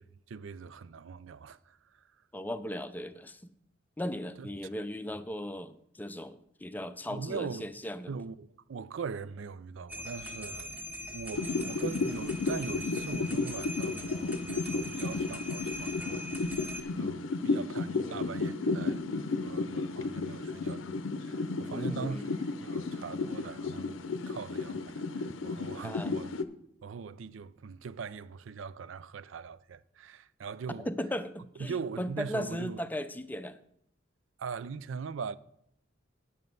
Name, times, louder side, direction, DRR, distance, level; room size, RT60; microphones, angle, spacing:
voice 1, 0.0-1.8 4.4-4.5 7.1-7.7 8.1-10.8 11.1-23.9 24.3-26.3 26.8-30.9 31.6-32.8 34.4-35.4, right 5 dB, 80° right, 0.4 m, -41 dB
voice 2, 2.3-3.5 4.0-8.1 18.0-18.2 21.7-22.3 25.8-26.1 30.8-33.6, left 1 dB, 10° left, 0.5 m, -37 dB
sound 1, 9.9-16.8, left 1 dB, 10° right, 1.2 m, -41 dB
sound 2, 11.3-26.4, left 3 dB, 80° left, 0.6 m, -33 dB
9.5 x 6.7 x 5.3 m
head